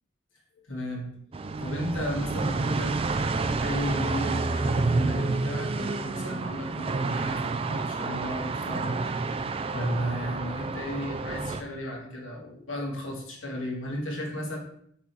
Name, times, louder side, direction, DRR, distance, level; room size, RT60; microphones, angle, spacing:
voice 1, 0.7-1.1 1.6-9.2 9.6-14.6, equal, 75° left, -2 dB, 2.0 m, -34 dB
sound 1, 1.3-11.6, right 3 dB, 30° right, 0.3 m, -29 dB
6.1 x 3.8 x 4.6 m, 0.68 s
head